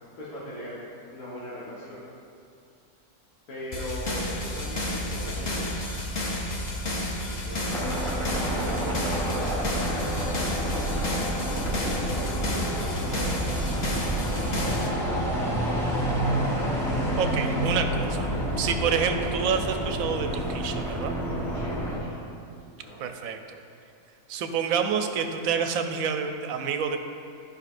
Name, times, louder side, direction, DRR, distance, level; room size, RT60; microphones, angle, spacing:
voice 1, 0.2-0.8 1.1-2.0 3.5-5.9 7.2-7.9 8.3-10.1 11.9-13.8 14.3-16.4 21.5-22.2 22.6-23.0, equal, 75° left, -9 dB, 1.8 m, -41 dB
sound 1, 3.7-14.9, left 1 dB, 40° left, 0.6 m, -31 dB
sound 2, 7.7-22.0, right 1 dB, ahead, 0.9 m, -29 dB
voice 2, 17.2-18.3 18.6-21.1 23.0-23.6 24.3-27.0, right 6 dB, 70° right, 6 dB, 1.0 m, -28 dB
11.5 x 5.2 x 2.5 m, 2.5 s
omnidirectional pair, 1.6 m